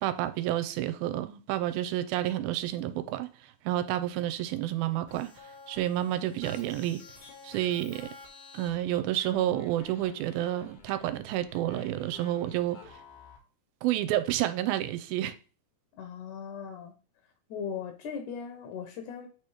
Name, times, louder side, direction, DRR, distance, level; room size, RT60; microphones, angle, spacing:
voice 1, 0.0-7.0 7.4-8.1 8.5-13.0 13.8-15.4, right 13 dB, 85° right, 2.4 m, -30 dB
sound 1, 5.1-13.4, left 4 dB, 85° left, 3.4 m, -51 dB
voice 2, 16.0-16.9 17.5-19.3, left 6 dB, 65° left, 2.1 m, -38 dB
8.8 x 3.1 x 4.9 m
omnidirectional pair, 4.3 m